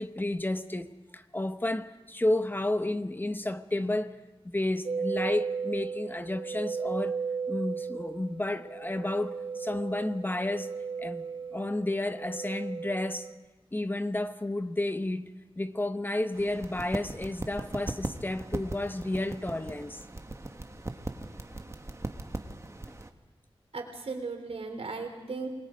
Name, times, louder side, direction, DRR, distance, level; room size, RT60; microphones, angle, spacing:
voice 1, 0.0-4.2 4.4-7.2 7.5-10.7 11.0-13.3 13.7-20.0, left 1 dB, 20° left, 0.9 m, -31 dB
sound 1, 4.9-13.3, right 5 dB, 60° right, 1.3 m, -35 dB
sound 2, 16.3-23.1, right 2 dB, 30° right, 1.4 m, -39 dB
voice 2, 23.7-25.5, right 4 dB, 80° right, 3.7 m, -36 dB
27.5 x 21.0 x 5.2 m
wide cardioid pair, 90°, 10 cm